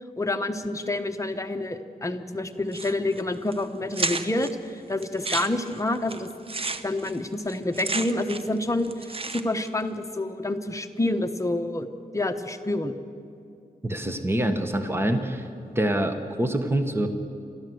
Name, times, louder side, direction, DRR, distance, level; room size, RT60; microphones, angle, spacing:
voice 1, 0.2-6.3 6.8-13.0, left 2 dB, 20° left, 7 dB, 1.1 m, -28 dB
sound 1, 2.7-3.2 3.5-3.6 3.9-4.5 5.0-8.6 8.8-9.7, right 3 dB, 40° right, 0.8 m, -32 dB
voice 2, 13.8-15.5 15.7-17.1, right 1 dB, 15° right, 7 dB, 1.3 m, -25 dB
29.0 x 13.0 x 7.9 m, 2.6 s
wide cardioid pair, 125°, 16 cm